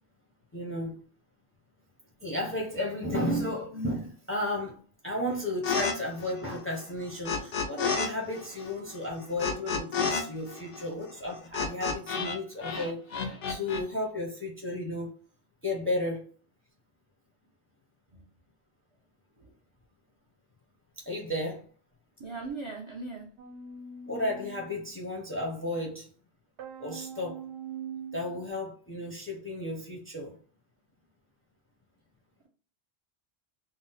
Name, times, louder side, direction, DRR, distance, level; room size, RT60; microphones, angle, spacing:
voice 1, 0.5-1.0 2.2-4.8 5.0-15.1 15.6-16.3 21.0-21.7 24.1-26.1 26.8-27.4 28.1-30.4, left 1 dB, 15° left, -1 dB, 0.4 m, -33 dB
sound 1, 5.6-5.9 6.2-8.1 8.3-12.4 12.6-13.8, left 5 dB, 85° left, 0.9 m, -31 dB
voice 2, 22.2-23.3, right 3 dB, 50° right, -1 dB, 0.3 m, -39 dB
sound 2, 23.4-24.9 26.6-28.5, right 6 dB, 75° right, 0.8 m, -42 dB
2.7 x 2.0 x 3.9 m, 0.41 s
omnidirectional pair, 1.2 m